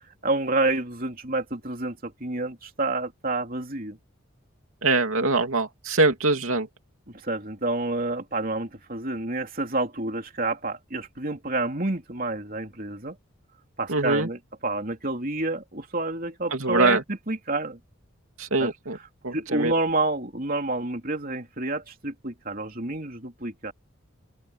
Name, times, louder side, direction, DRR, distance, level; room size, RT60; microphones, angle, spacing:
voice 1, 0.2-4.0 7.2-13.2 13.8-17.0 17.3-17.8 18.6-18.7 19.3-23.7, right 2 dB, 40° right, 3.4 m, -29 dB
voice 2, 4.8-6.7 13.9-14.3 16.5-17.0 18.4-19.0 19.2-19.8, right 3 dB, 75° right, 2.9 m, -23 dB
open air
head